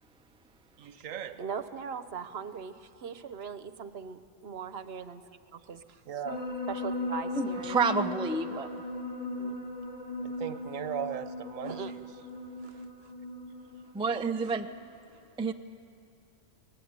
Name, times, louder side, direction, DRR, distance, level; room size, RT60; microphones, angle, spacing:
voice 1, 0.8-1.4 6.1-6.5 10.2-12.0, right 8 dB, 85° right, 11 dB, 1.3 m, -37 dB
voice 2, 1.4-6.0 6.7-8.1 8.5-8.7 9.4-9.5 11.6-11.9 12.6-13.1, right 6 dB, 55° right, 12 dB, 1.1 m, -40 dB
sound 1, 6.2-14.9, left 1 dB, 25° left, 2.3 m, -38 dB
voice 3, 7.3-8.7 13.9-14.7 15.4-15.5, right 4 dB, 10° right, 6 dB, 0.3 m, -29 dB
23.5 x 18.5 x 9.6 m, 2.6 s
omnidirectional pair, 1.3 m